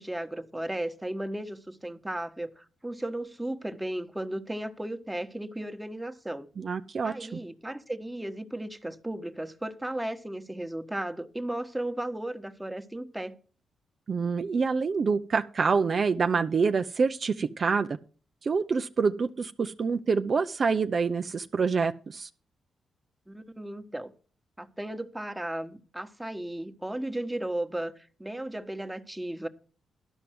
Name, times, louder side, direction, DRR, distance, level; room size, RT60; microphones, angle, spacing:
voice 1, 0.0-6.5 7.0-13.4 23.3-24.1 24.6-29.5, right 1 dB, 10° right, 1.2 m, -35 dB
voice 2, 6.6-7.4 14.1-18.0 18.4-22.3, right 5 dB, 55° right, 0.5 m, -26 dB
12.0 x 5.3 x 7.7 m
cardioid pair, 60°, 0 cm